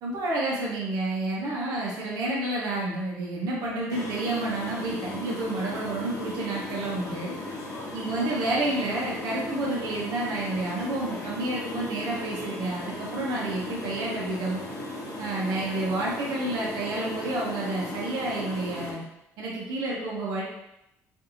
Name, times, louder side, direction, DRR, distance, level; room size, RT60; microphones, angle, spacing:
voice 1, 0.0-7.3 7.9-14.6 15.2-19.0 19.4-20.4, right 2 dB, 75° right, -4 dB, 0.7 m, -30 dB
sound 1, 3.9-18.9, left 2 dB, 55° left, 0.8 m, -37 dB
2.7 x 2.6 x 2.6 m, 0.85 s
supercardioid pair, 85°, 7 cm